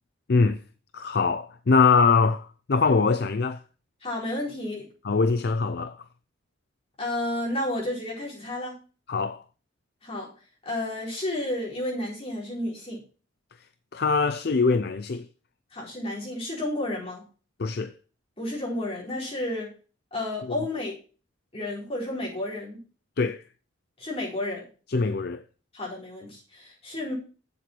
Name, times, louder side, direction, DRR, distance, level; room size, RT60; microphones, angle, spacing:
voice 1, 0.3-0.6 0.9-3.6 5.0-6.0 9.1-9.4 13.9-15.3 17.6-17.9 20.4-20.6 23.2-23.4 24.9-25.4, left 4 dB, 50° left, 0.5 m, -23 dB
voice 2, 4.0-4.9 7.0-8.7 10.0-10.3 10.6-13.0 15.7-17.2 18.4-19.7 20.1-20.9 21.5-22.8 24.0-24.6 25.7-27.1, left 1 dB, 30° left, 4.5 m, -31 dB
7.8 x 7.2 x 6.0 m
head